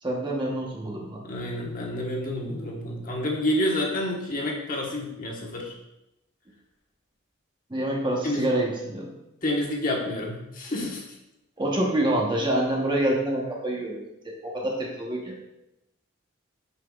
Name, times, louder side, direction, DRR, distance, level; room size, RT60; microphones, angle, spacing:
voice 1, 0.0-1.2 7.7-9.1 11.6-15.4, right 1 dB, 25° right, -2 dB, 1.0 m, -27 dB
voice 2, 1.2-5.7 8.2-8.5 9.4-11.0, left 1 dB, 45° left, -2 dB, 1.3 m, -29 dB
8.1 x 5.8 x 2.4 m, 0.90 s
head